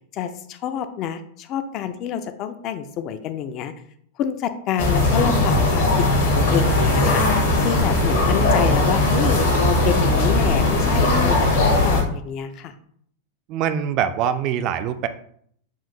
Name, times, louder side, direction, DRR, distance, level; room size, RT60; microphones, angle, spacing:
voice 1, 0.1-3.7 4.2-12.7, left 9 dB, 35° left, 10 dB, 0.4 m, -28 dB
sound 1, 4.8-12.0, left 2 dB, 60° left, 1.2 m, -19 dB
voice 2, 13.5-15.1, right 9 dB, 40° right, 10 dB, 0.4 m, -23 dB
7.2 x 2.5 x 2.8 m, 0.65 s
figure-of-eight pair, 90°, 0 cm